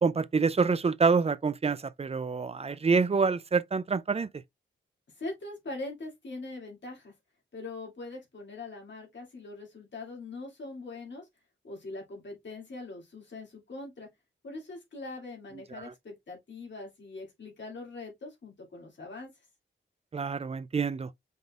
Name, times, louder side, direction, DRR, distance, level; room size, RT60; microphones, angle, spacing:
voice 1, 0.0-4.3 15.7-15.9 20.1-21.1, right 5 dB, 30° right, 0.4 m, -27 dB
voice 2, 5.2-7.1 7.5-11.3 11.6-14.1 14.4-19.3, left 2 dB, 60° left, 2.4 m, -42 dB
5.4 x 3.9 x 2.4 m
wide cardioid pair, 105°, 21 cm